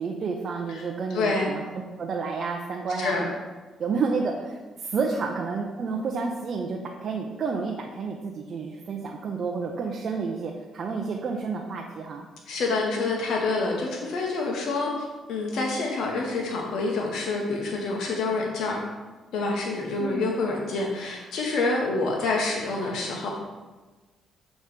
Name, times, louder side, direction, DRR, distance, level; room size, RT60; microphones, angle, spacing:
voice 1, 0.0-1.6 2.0-3.3 3.8-12.3 20.0-20.3, right 4 dB, 55° right, 0 dB, 0.6 m, -30 dB
voice 2, 1.1-1.5 3.0-3.2 12.5-18.8 19.3-23.3, left 3 dB, 75° left, -1 dB, 1.0 m, -27 dB
6.7 x 3.1 x 5.0 m, 1.3 s
cardioid pair, 90°, 0 cm